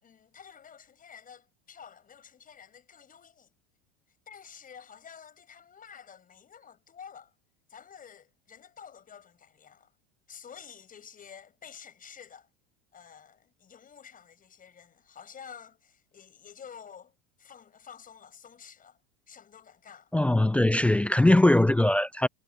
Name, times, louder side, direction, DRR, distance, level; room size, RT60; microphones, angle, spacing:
voice 1, 0.0-3.5 4.3-7.3 7.7-9.9 10.3-12.5 12.9-19.0 19.3-20.1, left 7 dB, 25° left, 6.7 m, -50 dB
voice 2, 20.1-22.3, left 1 dB, 5° left, 0.3 m, -21 dB
supercardioid pair, 110°, 31 cm